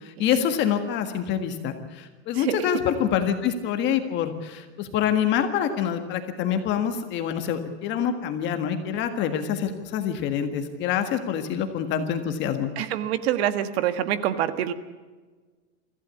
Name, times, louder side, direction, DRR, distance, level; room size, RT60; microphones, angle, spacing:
voice 1, 0.0-12.7, left 9 dB, 30° left, 7 dB, 1.7 m, -26 dB
voice 2, 2.4-2.7 12.8-14.7, right 11 dB, 50° right, 11 dB, 1.6 m, -26 dB
24.5 x 15.5 x 8.3 m, 1.4 s
supercardioid pair, 165°, 39 cm